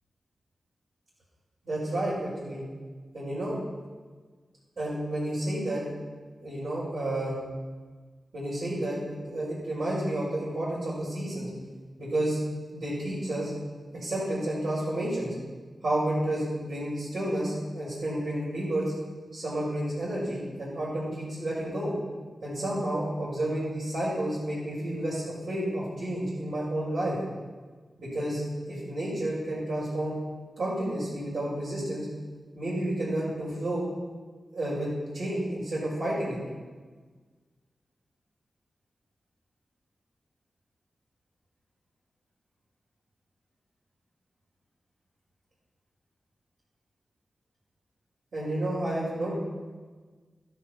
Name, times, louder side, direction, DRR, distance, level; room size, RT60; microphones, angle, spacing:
voice 1, 1.6-2.6 3.1-3.6 4.8-5.8 6.4-7.3 8.3-11.5 12.0-12.4 12.7-13.5 14.0-15.3 15.8-18.9 19.3-21.9 22.4-27.2 28.0-28.4 28.7-30.2 30.6-32.1 32.5-33.9 34.5-36.4 48.3-49.3, right 1 dB, 75° right, -11 dB, 5.1 m, -30 dB
12.5 x 10.5 x 5.9 m, 1.4 s
cardioid pair, 55°, 0 cm